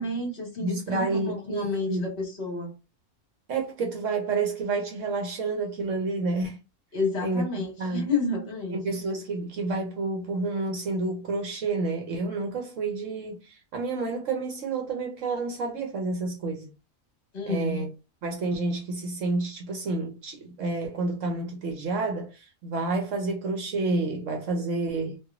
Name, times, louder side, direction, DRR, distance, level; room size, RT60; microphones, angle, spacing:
voice 1, 0.0-2.7 6.9-8.8 17.3-17.9, left 3 dB, 50° left, 1.5 m, -30 dB
voice 2, 0.6-2.1 3.5-6.6 7.2-7.4 7.8-8.1 8.7-16.7 17.5-17.9 18.2-25.2, right 3 dB, 65° right, 1.1 m, -29 dB
3.0 x 2.7 x 2.4 m
omnidirectional pair, 1.5 m